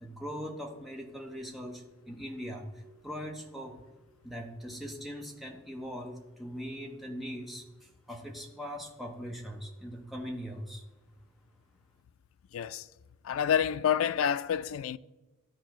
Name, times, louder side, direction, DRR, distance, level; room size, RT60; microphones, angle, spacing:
voice 1, 0.0-3.8 4.2-10.8, equal, ahead, 0.9 m, -41 dB
voice 2, 12.5-12.9 13.2-15.0, left 8 dB, 80° left, 0.3 m, -28 dB
13.5 x 4.6 x 3.1 m
head